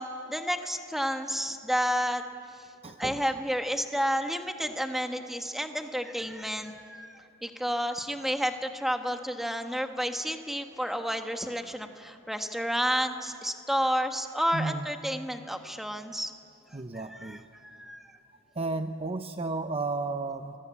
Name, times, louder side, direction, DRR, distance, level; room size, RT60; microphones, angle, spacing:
voice 1, 0.0-2.2 3.0-16.3 16.9-18.0, equal, ahead, 5 dB, 1.4 m, -31 dB
voice 2, 2.8-3.3 14.5-14.9 16.7-17.4 18.6-20.5, right 3 dB, 30° right, 8 dB, 0.7 m, -33 dB
29.5 x 22.5 x 8.5 m, 2.7 s
head